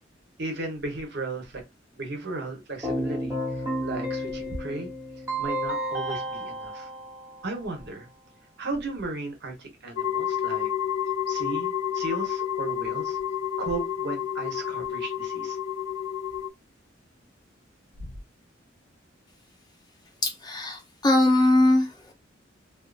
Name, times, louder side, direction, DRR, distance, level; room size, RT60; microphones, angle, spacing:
voice 1, 0.4-1.6 1.9-4.9 5.1-6.9 7.4-8.1 8.6-10.7 11.3-13.2 13.6-15.6 18.0-18.1, right 2 dB, 60° right, 1.0 m, -35 dB
Keyboard (musical), 2.8-7.8, equal, 15° right, 1.1 m, -32 dB
sound 1, 10.0-16.5, left 9 dB, 80° left, 0.3 m, -30 dB
voice 2, 20.2-22.1, left 1 dB, 20° left, 0.7 m, -21 dB
2.6 x 2.5 x 2.3 m
head